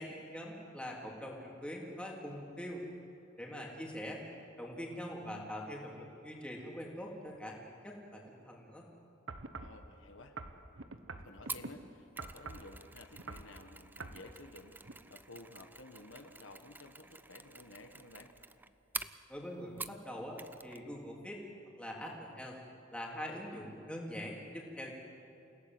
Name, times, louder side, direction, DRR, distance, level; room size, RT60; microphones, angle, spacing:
voice 1, 0.0-2.8 3.4-4.2 4.6-8.9 19.3-21.4 21.8-22.6 22.9-24.9, equal, 5° left, -2 dB, 3.6 m, -43 dB
sound 1, 9.3-9.8 10.4-11.7 12.2-12.7 13.1-13.5 14.0-14.2 14.8-14.9, right 3 dB, 80° right, 1.3 m, -45 dB
voice 2, 9.6-10.3 11.2-14.7 15.1-18.3, left 2 dB, 75° left, 5 dB, 1.6 m, -53 dB
Mechanisms, 11.5-20.1 20.4-20.8 21.1-21.2, right 3 dB, 10° right, 0.5 m, -48 dB
28.5 x 17.0 x 8.0 m, 2.8 s
head